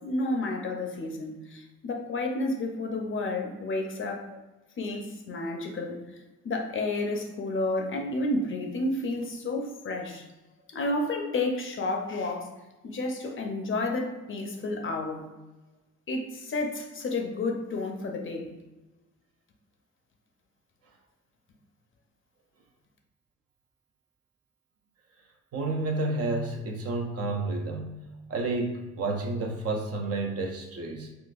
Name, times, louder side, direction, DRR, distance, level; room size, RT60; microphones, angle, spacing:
voice 1, 0.0-4.2 4.8-6.0 6.4-10.2 10.7-12.5 12.8-15.2 16.1-18.5, left 2 dB, 45° left, 2 dB, 0.6 m, -31 dB
voice 2, 25.5-28.0 28.3-31.1, right 2 dB, 55° right, 3 dB, 0.6 m, -30 dB
3.8 x 2.3 x 2.4 m, 1.1 s
cardioid pair, 90°, 30 cm